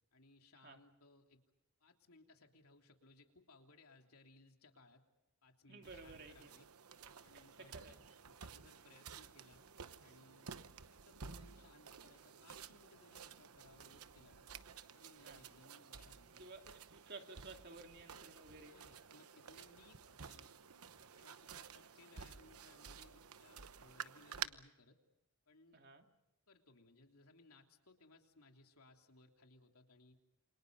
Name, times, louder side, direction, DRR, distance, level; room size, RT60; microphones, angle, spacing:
voice 1, 0.1-1.4 1.8-5.0 5.4-6.7 7.2-8.0 8.4-9.6 10.0-10.6 10.9-14.5 14.9-16.7 18.7-20.5 21.1-25.0 25.5-25.9 26.5-30.2, left 2 dB, 80° left, 3 dB, 3.2 m, -65 dB
voice 2, 5.7-6.5 7.3-8.0 15.1-15.4 16.4-16.6 16.9-18.8 25.7-26.0, right 3 dB, 45° right, 4 dB, 2.8 m, -54 dB
sound 1, 5.8-24.5, right 7 dB, 85° right, 1.0 m, -53 dB
28.5 x 26.5 x 5.4 m, 0.90 s
head